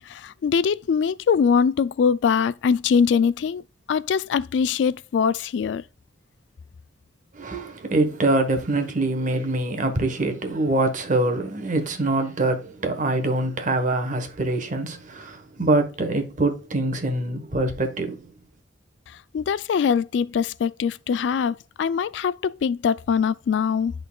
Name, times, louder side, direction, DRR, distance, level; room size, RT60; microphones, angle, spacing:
voice 1, 0.1-3.6 3.9-5.8 19.3-23.9, left 6 dB, 70° left, 0.3 m, -22 dB
voice 2, 7.3-18.3, right 2 dB, 45° right, 1.2 m, -24 dB
11.0 x 3.9 x 2.3 m
head